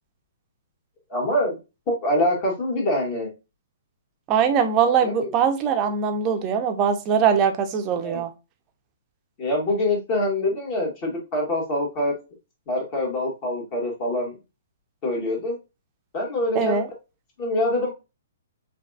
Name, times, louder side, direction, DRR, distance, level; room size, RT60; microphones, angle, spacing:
voice 1, 1.1-1.6 1.9-3.3 5.0-5.3 8.0-8.2 9.4-12.1 12.7-14.3 15.0-15.6 16.1-16.8 17.4-17.9, left 1 dB, 35° left, -1 dB, 2.0 m, -25 dB
voice 2, 4.3-8.3 16.5-16.9, right 7 dB, 30° right, 6 dB, 0.7 m, -21 dB
5.6 x 2.6 x 2.3 m, 0.27 s
figure-of-eight pair, 120°, 0 cm